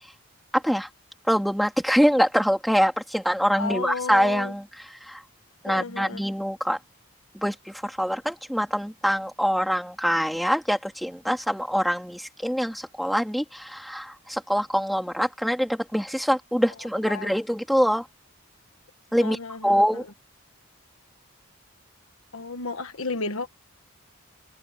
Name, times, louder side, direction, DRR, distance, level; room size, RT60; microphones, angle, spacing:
voice 1, 0.5-0.9 1.3-5.2 5.6-6.8 7.4-18.0 19.1-20.0, equal, ahead, 3.3 m, -24 dB
voice 2, 3.5-4.5 5.7-6.2 17.1-17.3 19.1-20.0 22.3-23.5, left 4 dB, 75° left, 1.3 m, -33 dB
head